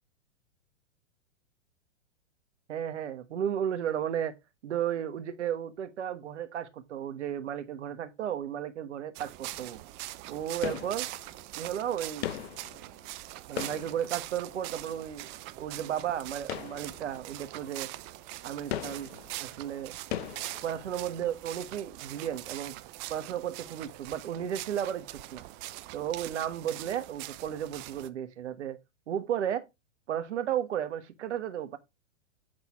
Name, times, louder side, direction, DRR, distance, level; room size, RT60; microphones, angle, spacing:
voice 1, 2.7-4.3 4.6-9.8 10.3-11.1 11.5-12.3 13.5-15.3 15.6-17.9 18.4-19.1 19.4-19.9 20.6-22.7 23.1-25.4 25.9-28.8 29.1-29.6 30.1-31.8, right 10 dB, 65° right, 1.2 m, -34 dB
sound 1, 9.2-28.1, right 17 dB, 30° right, 0.5 m, -43 dB
sound 2, 10.6-11.5 12.2-14.8 16.4-17.4 17.8-17.9 18.7-21.3 21.5-21.6, left 11 dB, 55° left, 0.9 m, -39 dB
8.1 x 5.9 x 3.5 m
hypercardioid pair, 110°, 37 cm